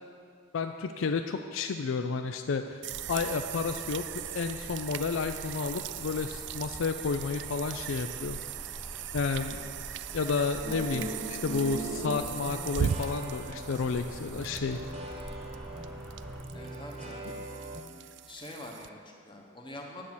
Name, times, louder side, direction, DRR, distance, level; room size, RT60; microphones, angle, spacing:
voice 1, 0.5-2.8 3.1-8.4 9.1-9.7 10.1-14.8, left 4 dB, 70° left, 7 dB, 0.4 m, -31 dB
sound 1, 2.8-18.9, right 9 dB, 55° right, 0.3 m, -39 dB
sound 2, 2.9-16.4, equal, ahead, 0.6 m, -46 dB
sound 3, 10.6-17.8, right 1 dB, 30° right, 1.1 m, -40 dB
voice 2, 16.5-17.4 18.3-20.0, left 1 dB, 20° left, 0 dB, 1.2 m, -45 dB
10.0 x 8.4 x 6.1 m, 2.2 s
head